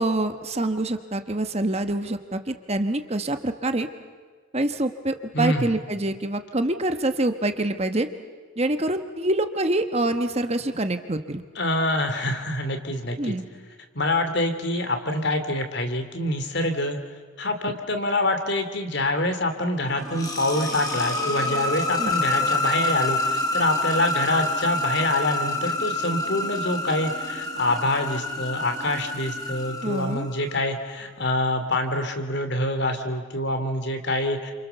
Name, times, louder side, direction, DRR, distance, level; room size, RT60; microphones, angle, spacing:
voice 1, 0.0-3.9 4.5-8.1 8.6-11.4 13.2-13.4 22.0-22.1 29.8-30.3, right 1 dB, 30° right, 8 dB, 1.2 m, -26 dB
voice 2, 5.3-5.7 11.5-13.3 13.9-17.0 17.4-34.5, left 1 dB, 55° left, 7 dB, 2.9 m, -26 dB
sound 1, 19.8-30.6, left 2 dB, 20° left, 3.0 m, -28 dB
30.0 x 27.5 x 6.9 m, 1.5 s
head